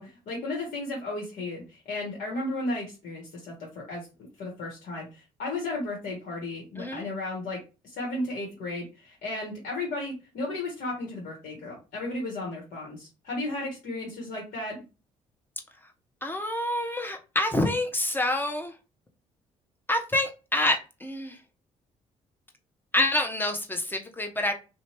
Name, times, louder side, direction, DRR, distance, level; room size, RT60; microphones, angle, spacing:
voice 1, 0.0-4.1 4.4-7.6 7.8-14.8, left 2 dB, 65° left, -1 dB, 1.1 m, -34 dB
voice 2, 16.2-18.7 19.9-21.4 22.9-24.5, left 1 dB, 15° left, 4 dB, 0.8 m, -27 dB
2.7 x 2.2 x 3.0 m, 0.30 s
hypercardioid pair, 55°, 15 cm